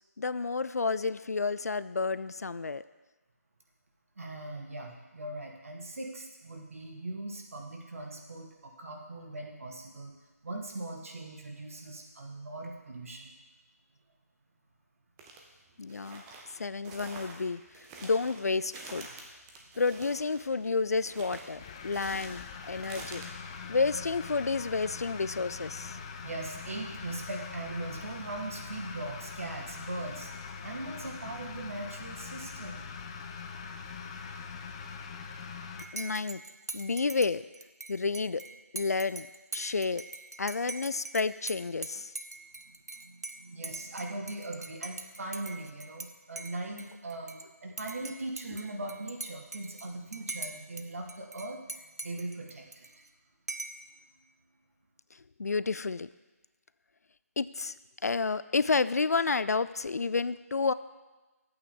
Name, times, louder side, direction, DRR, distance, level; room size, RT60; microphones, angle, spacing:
voice 1, 0.2-2.8 15.8-16.2 16.5-19.1 19.8-23.2 23.7-26.0 35.9-36.4 36.7-37.4 37.9-38.4 38.7-39.3 39.5-40.0 40.4-42.1 55.4-56.1 57.4-57.7 58.0-60.7, left 4 dB, 70° left, 16 dB, 0.4 m, -30 dB
voice 2, 4.2-10.1 10.4-13.3 26.2-30.3 30.6-32.9 33.2-33.3 42.7-52.9, right 2 dB, 55° right, 1 dB, 1.7 m, -40 dB
sound 1, 15.2-15.4 15.9-23.3, right 3 dB, 10° right, 0.7 m, -48 dB
sound 2, 21.5-35.8, left 5 dB, 20° left, 0.5 m, -43 dB
Dishes pots and pans / Cutlery silverware / Chink clink, 35.8-46.1 46.4-47.4 47.8-50.8 51.1-53.1 53.5-53.9, right 3 dB, 80° right, 0.8 m, -42 dB
11.0 x 8.6 x 3.8 m, 1.2 s
figure-of-eight pair, 155°, 9 cm